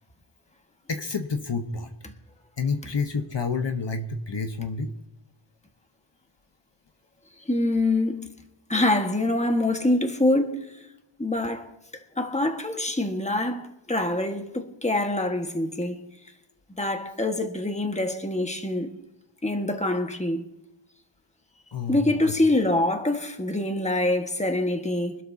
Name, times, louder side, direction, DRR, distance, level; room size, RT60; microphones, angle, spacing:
voice 1, 0.9-1.9 2.6-4.9 21.7-22.3, left 4 dB, 60° left, 1.2 m, -29 dB
voice 2, 7.5-8.3 8.7-10.8 11.2-16.0 16.8-18.9 19.4-20.4 21.9-25.2, left 1 dB, 15° left, 1.6 m, -25 dB
25.0 x 12.5 x 2.8 m
wide cardioid pair, 65°, 49 cm